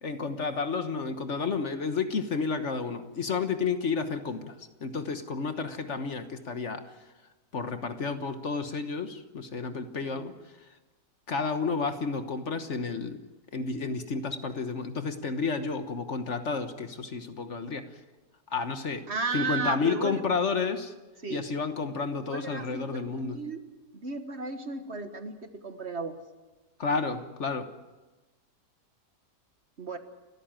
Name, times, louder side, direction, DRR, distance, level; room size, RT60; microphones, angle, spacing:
voice 1, 0.0-6.8 7.5-10.3 11.3-13.2 13.5-17.9 18.5-19.0 19.3-20.9 21.3-23.4 26.8-27.7, left 4 dB, 50° left, 9 dB, 1.5 m, -31 dB
voice 2, 19.1-20.2 21.2-21.4 22.1-23.6 23.9-26.2 29.8-30.0, right 4 dB, 45° right, 8 dB, 1.7 m, -34 dB
29.5 x 14.0 x 9.0 m, 1.2 s
omnidirectional pair, 1.6 m